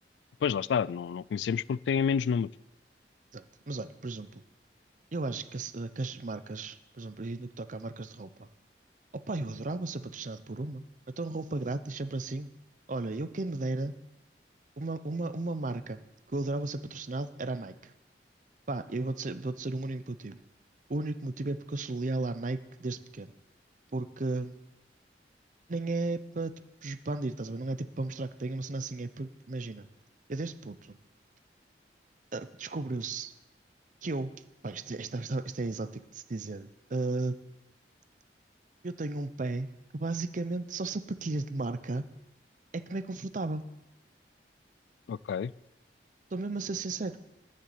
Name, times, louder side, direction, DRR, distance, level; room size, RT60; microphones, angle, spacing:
voice 1, 0.4-2.5 45.1-45.5, left 7 dB, 85° left, 21 dB, 0.3 m, -29 dB
voice 2, 3.3-4.4 5.1-8.5 9.3-10.8 11.2-12.5 12.9-13.9 14.8-16.0 16.3-17.9 18.7-20.4 20.9-23.3 23.9-24.7 25.7-26.5 26.8-29.9 30.3-31.0 32.3-33.3 34.0-34.3 34.6-37.4 38.8-39.7 39.9-42.0 42.7-43.6 46.3-47.2, right 2 dB, 45° right, 12 dB, 0.6 m, -34 dB
10.5 x 6.7 x 7.7 m, 0.92 s
head